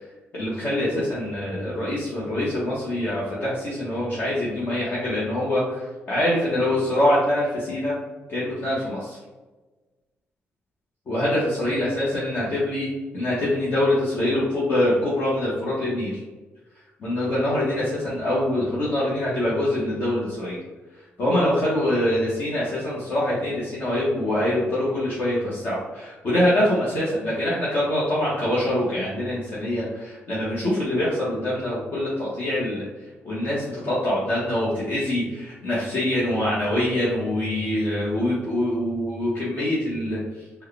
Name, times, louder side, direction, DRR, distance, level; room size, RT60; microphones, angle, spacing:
voice 1, 0.3-7.9 8.3-9.2 11.1-12.9 13.1-16.2 17.0-20.6 21.2-32.9 33.2-40.2, left 1 dB, 45° left, -8 dB, 1.1 m, -24 dB
4.4 x 2.3 x 3.3 m, 1.2 s
cardioid pair, 140°, 5 cm